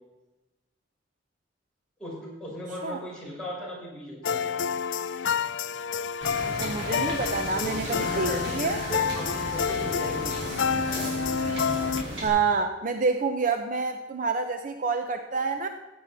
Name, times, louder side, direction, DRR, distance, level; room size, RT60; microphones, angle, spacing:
voice 1, 2.0-4.7 7.0-10.4, equal, 5° left, -7 dB, 5.3 m, -38 dB
sound 1, 4.2-12.0, left 6 dB, 75° left, 0.5 m, -29 dB
Wind / Boat Water vehicle, 6.2-12.3, right 1 dB, 75° right, 4.3 m, -35 dB
voice 2, 6.4-8.8 12.2-15.7, right 4 dB, 45° right, 6 dB, 0.8 m, -28 dB
16.0 x 8.8 x 4.1 m, 1.1 s
head